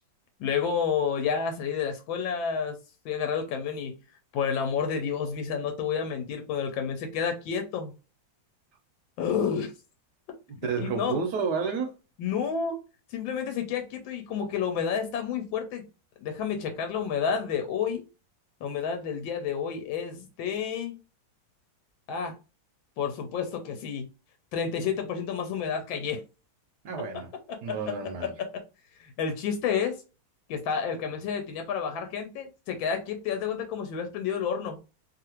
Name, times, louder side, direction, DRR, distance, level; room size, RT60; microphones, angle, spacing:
voice 1, 0.4-2.8 3.0-4.0 4.3-7.9 9.2-9.7 10.8-11.2 12.2-12.8 13.1-15.8 16.2-18.0 18.6-21.0 22.1-22.3 23.0-24.1 24.5-26.2 29.0-30.0 30.5-34.8, left 7 dB, 90° left, 1.4 m, -30 dB
voice 2, 10.6-11.9 26.8-27.3 27.6-28.3, right 5 dB, 70° right, 1.0 m, -30 dB
3.1 x 2.5 x 2.8 m
omnidirectional pair, 2.0 m